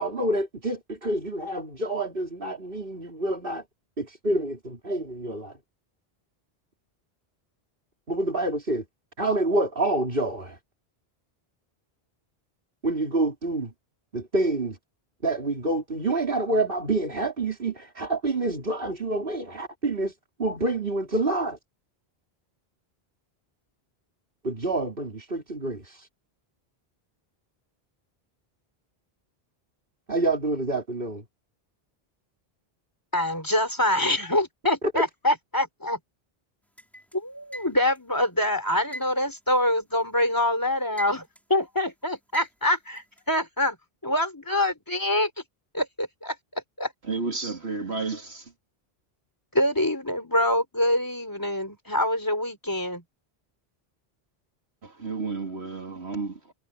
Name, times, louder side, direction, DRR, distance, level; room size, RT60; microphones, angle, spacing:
voice 1, 0.0-3.6 4.0-5.6 8.1-8.8 9.2-10.6 12.8-13.7 14.1-14.8 15.2-20.1 20.4-21.6 24.4-26.1 30.1-31.2 34.9-35.0, right 2 dB, 60° right, 4.1 m, -27 dB
voice 2, 33.1-36.0 37.1-41.2 41.5-43.8 44.0-45.3 45.7-46.9 49.5-53.0, left 1 dB, 20° left, 3.8 m, -25 dB
sound 1, 36.8-38.1 38.9-40.3 40.7-41.6 42.3-43.2, equal, ahead, 5.4 m, -39 dB
voice 3, 47.1-48.4 55.0-56.5, right 4 dB, 90° right, 3.4 m, -31 dB
omnidirectional pair, 1.1 m